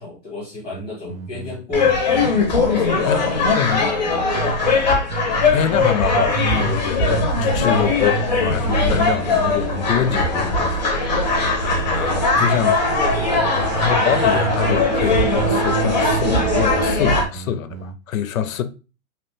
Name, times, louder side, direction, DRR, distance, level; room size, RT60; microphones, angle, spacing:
voice 1, 0.0-2.0 2.7-4.6 12.9-13.6, left 3 dB, 5° right, 0.7 m, -31 dB
sound 1, 0.7-4.8 5.1-6.8 7.1-12.8 13.1-14.8 15.1-18.0, right 6 dB, 75° right, 0.6 m, -31 dB
sound 2, 1.7-17.2, left 3 dB, 35° left, 0.4 m, -20 dB
voice 2, 5.5-13.0 13.5-18.6, left 9 dB, 85° left, 0.5 m, -25 dB
sound 3, 8.4-16.9, right 4 dB, 30° right, 0.4 m, -28 dB
2.9 x 2.1 x 3.0 m
hypercardioid pair, 175°, 40 cm